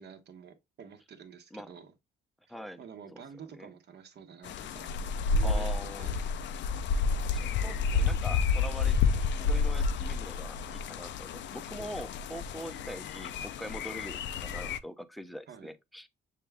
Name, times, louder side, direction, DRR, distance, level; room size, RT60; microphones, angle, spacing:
voice 1, 0.0-1.9 2.8-4.9 5.3-6.3 15.5-15.7, right 7 dB, 60° right, 0.9 m, -49 dB
voice 2, 2.5-2.8 3.1-3.2 3.5-3.7 5.4-6.1 7.3-16.1, equal, ahead, 0.5 m, -43 dB
sound 1, 4.4-14.8, left 4 dB, 65° left, 0.4 m, -30 dB
6.6 x 2.3 x 3.4 m
cardioid pair, 90°, 20 cm